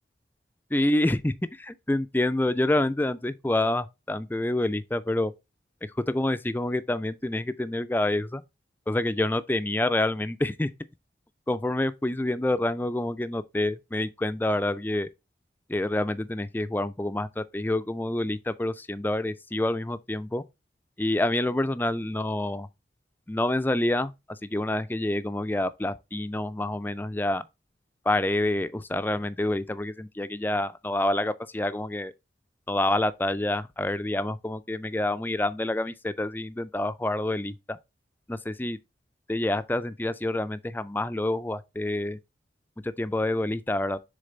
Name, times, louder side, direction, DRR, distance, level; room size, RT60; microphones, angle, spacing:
voice 1, 0.7-5.3 6.1-8.4 8.9-10.7 11.5-15.1 15.7-20.4 21.0-22.7 23.3-27.5 28.1-32.1 32.7-37.8 38.3-38.8 39.3-42.2 42.8-44.0, left 1 dB, 10° left, 0.4 m, -27 dB
6.6 x 3.9 x 3.9 m
head